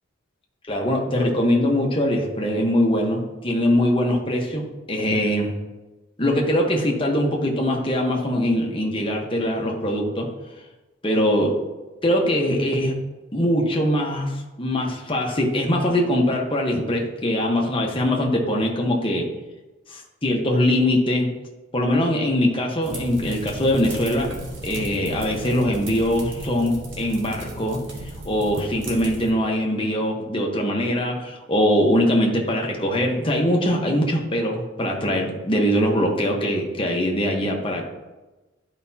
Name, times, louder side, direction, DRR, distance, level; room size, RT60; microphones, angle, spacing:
voice 1, 0.7-5.5 6.2-10.3 11.0-11.6 12.0-13.0 13.3-19.3 19.9-21.3 21.7-24.4 24.6-27.8 28.3-37.8, equal, 25° left, 0 dB, 1.1 m, -22 dB
sound 1, 22.8-29.3, right 1 dB, 65° right, 1.5 m, -35 dB
11.5 x 5.1 x 2.8 m, 1.1 s
head